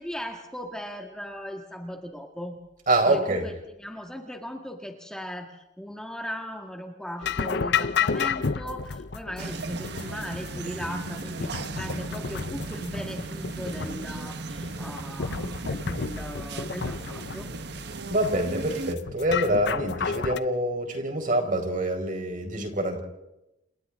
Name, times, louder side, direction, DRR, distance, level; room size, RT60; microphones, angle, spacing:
voice 1, 0.0-2.6 3.0-3.5 3.8-17.5, equal, 5° left, 2 dB, 1.8 m, -38 dB
voice 2, 2.9-3.4 18.1-23.0, right 1 dB, 45° right, 4 dB, 4.5 m, -26 dB
sound 1, 7.2-20.4, left 5 dB, 65° left, 0.7 m, -32 dB
sound 2, 9.4-18.9, right 3 dB, 60° right, 1.3 m, -36 dB
29.0 x 28.0 x 3.7 m, 0.91 s
head